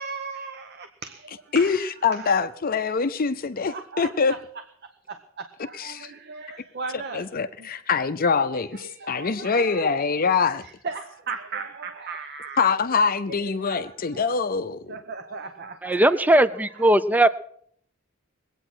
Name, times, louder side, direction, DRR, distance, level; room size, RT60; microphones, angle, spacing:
voice 1, 0.0-2.3 3.7-4.4 5.1-7.3 7.6-7.7 8.5-9.9 10.6-12.7 13.3-14.3 14.9-16.3, right 5 dB, 50° right, 1.0 m, -37 dB
voice 2, 1.5-4.3 5.8-6.1 7.1-10.6 12.6-15.0, left 5 dB, 45° left, 0.6 m, -24 dB
voice 3, 15.8-17.3, right 1 dB, 10° right, 0.5 m, -18 dB
21.0 x 9.0 x 6.2 m
head